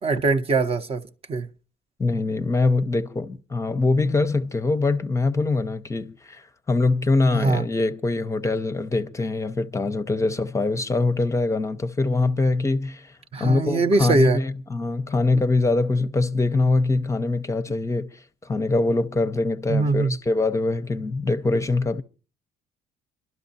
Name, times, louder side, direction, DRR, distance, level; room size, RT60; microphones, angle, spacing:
voice 1, 0.0-1.5 7.3-7.7 13.3-14.4 19.7-20.2, right 3 dB, 35° right, 0.7 m, -22 dB
voice 2, 2.0-13.1 13.4-22.0, left 3 dB, 15° left, 0.6 m, -23 dB
29.0 x 12.0 x 2.7 m
cardioid pair, 110°, 17 cm